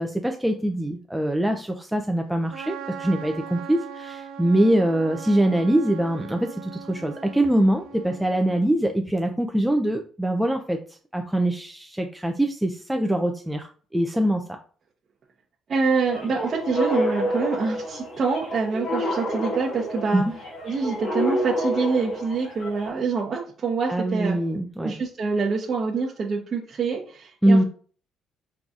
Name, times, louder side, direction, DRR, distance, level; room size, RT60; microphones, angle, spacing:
voice 1, 0.0-13.7 13.9-14.6 20.1-20.3 23.9-25.0 27.4-27.6, right 1 dB, 5° right, 4 dB, 0.4 m, -23 dB
Trumpet, 2.5-8.7, right 7 dB, 85° right, 0.8 m, -40 dB
voice 2, 15.7-20.2 20.6-24.4 24.8-27.6, right 4 dB, 40° right, -2 dB, 0.7 m, -26 dB
sound 1, 16.0-22.9, equal, 60° left, 1.9 m, -29 dB
4.6 x 3.9 x 2.4 m, 0.43 s
cardioid pair, 135°, 0 cm